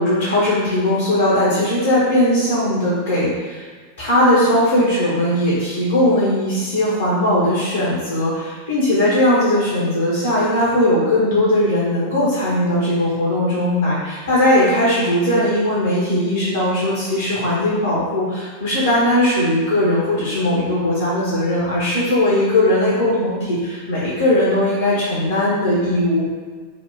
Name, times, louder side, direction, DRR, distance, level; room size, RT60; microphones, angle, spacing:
voice 1, 0.0-3.7 4.0-26.2, left 1 dB, 65° left, -9 dB, 1.1 m, -18 dB
3.6 x 2.3 x 3.8 m, 1.5 s
figure-of-eight pair, 90°, 0 cm